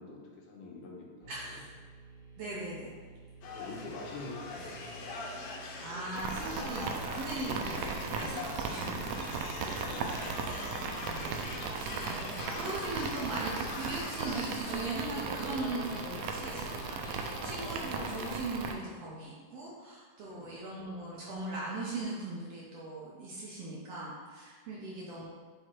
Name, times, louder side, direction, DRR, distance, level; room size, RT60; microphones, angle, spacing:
voice 1, 0.0-1.6 2.8-2.9 3.5-5.1 9.7-10.3 20.2-20.6 24.7-24.9, left 3 dB, 90° left, -2 dB, 2.6 m, -47 dB
Tube Amp turning on, 1.2-18.5, right 4 dB, 30° left, 0.9 m, -53 dB
voice 2, 1.3-1.7 2.4-2.9 5.8-9.3 11.0-25.2, right 2 dB, 70° right, -5 dB, 1.6 m, -40 dB
sound 1, 3.4-18.4, left 3 dB, 70° left, 1.8 m, -42 dB
sound 2, 6.2-18.7, right 5 dB, 85° right, 1.5 m, -37 dB
7.8 x 2.9 x 4.4 m, 1.5 s
omnidirectional pair, 3.7 m